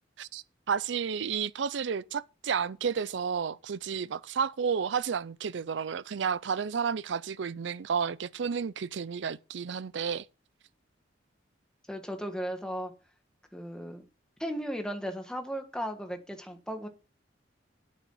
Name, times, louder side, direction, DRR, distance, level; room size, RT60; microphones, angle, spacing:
voice 1, 0.2-10.3, right 6 dB, 70° right, 0.5 m, -31 dB
voice 2, 11.9-12.9 13.5-14.0 14.4-16.9, equal, 5° left, 1.4 m, -36 dB
8.6 x 7.4 x 5.4 m
head